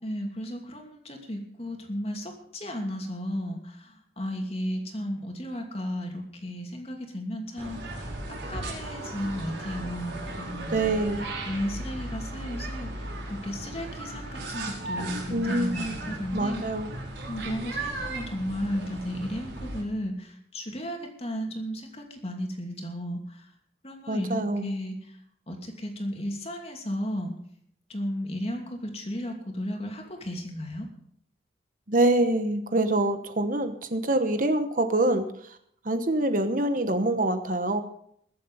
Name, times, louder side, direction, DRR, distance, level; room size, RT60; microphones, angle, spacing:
voice 1, 0.0-11.0 11.5-16.6 17.3-23.5 23.8-25.2 25.5-27.4 27.9-30.9, equal, 35° left, 2 dB, 2.7 m, -34 dB
sound 1, 7.6-19.8, right 2 dB, 80° right, 4.9 m, -36 dB
voice 2, 10.7-11.3 15.3-16.0 16.3-16.9 24.1-24.7 31.9-35.6 35.8-37.8, right 1 dB, 45° right, 8 dB, 1.1 m, -25 dB
21.5 x 7.8 x 5.6 m, 0.68 s
head